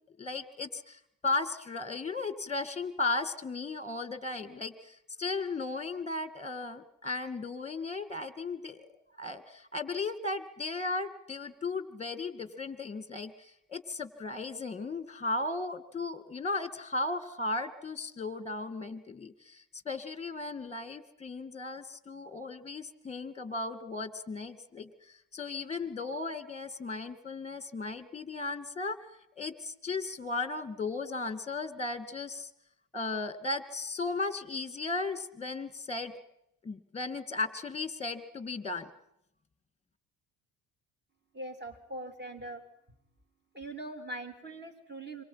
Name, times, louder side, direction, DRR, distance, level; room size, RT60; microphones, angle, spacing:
voice 1, 0.2-8.9 9.2-29.0 29.4-32.5 32.9-36.1 36.6-38.9, left 3 dB, 15° left, 12 dB, 2.2 m, -36 dB
voice 2, 41.3-42.6 43.5-45.2, right 1 dB, 25° right, 5 dB, 3.3 m, -41 dB
26.5 x 24.5 x 5.9 m, 0.79 s
supercardioid pair, 75°, 45 cm